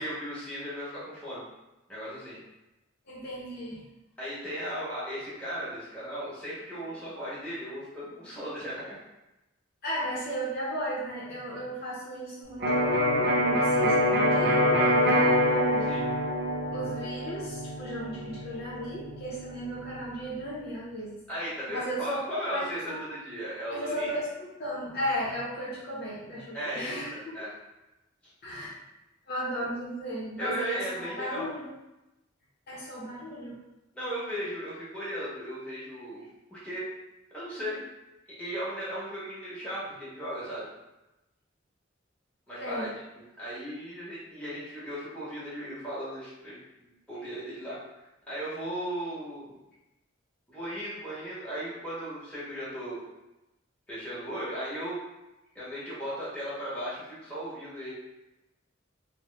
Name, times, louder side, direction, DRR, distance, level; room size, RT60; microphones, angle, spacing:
voice 1, 0.0-1.4 1.9-2.4 4.2-9.0 15.8-16.0 21.3-24.1 26.5-27.5 30.4-31.5 33.9-36.8 37.3-37.8 38.4-40.7 42.5-42.9 43.4-47.8 48.3-49.6 50.5-53.0 53.9-55.0 55.5-57.9, equal, 5° left, -10 dB, 1.0 m, -36 dB
voice 2, 3.1-3.8 9.8-15.9 16.7-21.2 21.7-22.2 22.5-23.0 23.7-27.1 28.4-28.7 29.3-31.7 32.7-33.6 42.6-42.9, equal, 50° left, -6 dB, 0.7 m, -35 dB
Electric guitar, 12.6-20.4, equal, 55° right, 0.6 m, -26 dB
2.9 x 2.1 x 3.2 m, 0.97 s
head